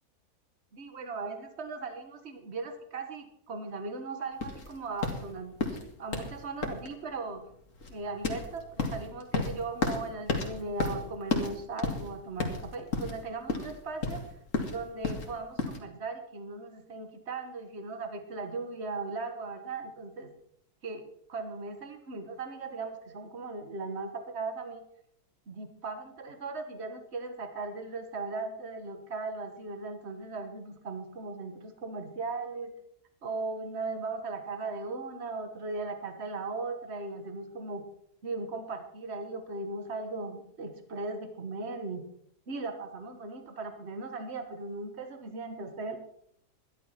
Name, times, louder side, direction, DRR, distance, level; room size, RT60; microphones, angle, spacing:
voice 1, 0.7-5.6 6.0-7.4 7.9-14.2 14.6-20.3 20.8-21.0 21.3-24.8 25.5-32.7 33.2-37.8 38.2-42.0 42.5-46.0, right 3 dB, 45° right, 7 dB, 1.8 m, -38 dB
sound 1, 4.4-15.8, left 3 dB, 60° left, 2.4 m, -34 dB
12.0 x 11.5 x 5.8 m, 0.69 s
omnidirectional pair, 1.6 m